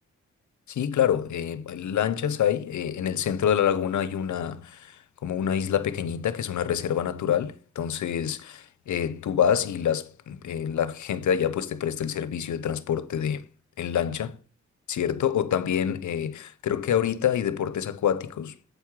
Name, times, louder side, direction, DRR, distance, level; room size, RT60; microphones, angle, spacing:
voice 1, 0.7-13.4 13.8-14.4 14.9-18.5, left 9 dB, 75° left, 0.7 m, -27 dB
8.1 x 4.8 x 4.7 m
cardioid pair, 50°, 30 cm